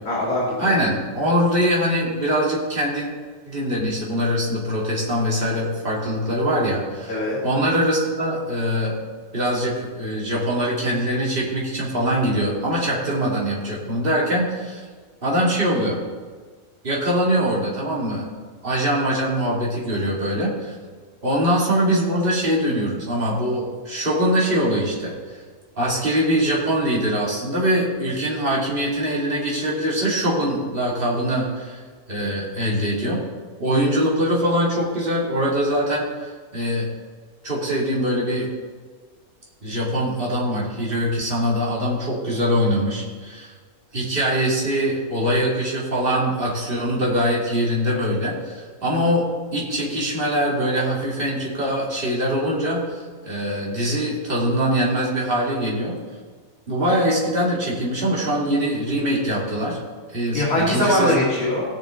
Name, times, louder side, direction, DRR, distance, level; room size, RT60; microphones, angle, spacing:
voice 1, 0.0-0.7 7.1-7.4 60.3-61.6, left 1 dB, 65° left, -5 dB, 2.7 m, -21 dB
voice 2, 0.6-3.1 3.5-9.0 9.3-14.8 15.2-16.0 16.8-18.3 18.6-20.7 21.2-25.1 25.8-31.8 32.1-33.2 33.6-36.9 37.4-38.5 39.6-43.5 43.9-49.3 49.5-56.0 56.7-59.8 60.1-61.2, equal, 35° right, -5 dB, 2.9 m, -23 dB
18.0 x 6.5 x 3.8 m, 1.5 s
omnidirectional pair, 1.6 m